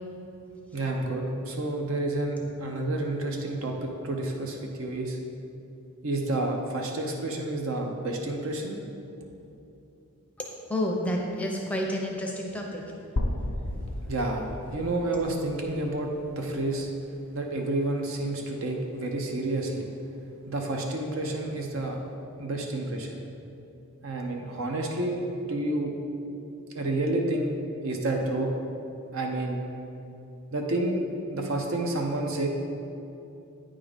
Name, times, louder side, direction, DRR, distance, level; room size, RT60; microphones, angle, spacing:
voice 1, 0.7-5.2 6.0-8.7 14.1-16.9 17.3-19.9 20.5-22.0 22.4-23.2 24.0-25.2 25.5-25.9 26.8-27.5 27.8-28.6 29.1-29.6 30.5-31.0 31.3-32.5, right 2 dB, 60° right, 2 dB, 0.6 m, -29 dB
voice 2, 10.7-12.8, left 1 dB, 5° left, -1 dB, 0.6 m, -29 dB
sound 1, 13.2-17.1, left 1 dB, 75° left, 0.7 m, -34 dB
8.7 x 3.7 x 5.0 m, 2.8 s
head